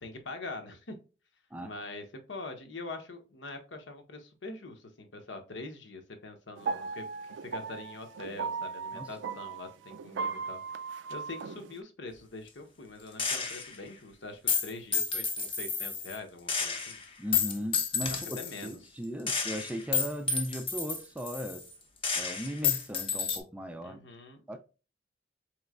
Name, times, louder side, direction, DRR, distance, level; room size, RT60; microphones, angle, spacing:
voice 1, 0.0-1.0 1.6-10.6 11.1-17.0 18.1-19.0 23.8-24.6, left 2 dB, 85° left, 0.8 m, -44 dB
sound 1, 6.6-11.8, right 5 dB, 85° right, 0.3 m, -37 dB
Gunshot gunfire, 13.2-13.8 14.5-16.2 16.5-18.7 19.3-21.7 22.0-23.4, left 6 dB, 30° left, 0.6 m, -31 dB
voice 2, 17.2-21.7 22.2-24.0 24.5-24.6, equal, 5° right, 0.3 m, -37 dB
4.2 x 3.0 x 2.4 m
head